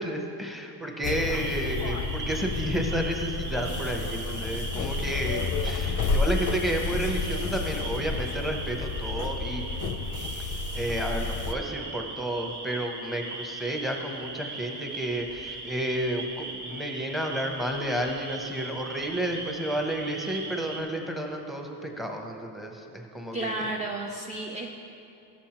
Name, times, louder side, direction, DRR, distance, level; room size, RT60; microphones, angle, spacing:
voice 1, 0.0-9.6 10.5-23.6, right 1 dB, ahead, 2 dB, 0.8 m, -31 dB
sound 1, 1.0-11.5, left 4 dB, 45° left, 0.5 m, -31 dB
sound 2, 1.3-20.8, right 3 dB, 55° right, 1.2 m, -39 dB
voice 2, 23.3-24.7, right 2 dB, 15° right, 1 dB, 0.4 m, -32 dB
13.5 x 7.0 x 2.9 m, 2.9 s
cardioid pair, 125°, 48 cm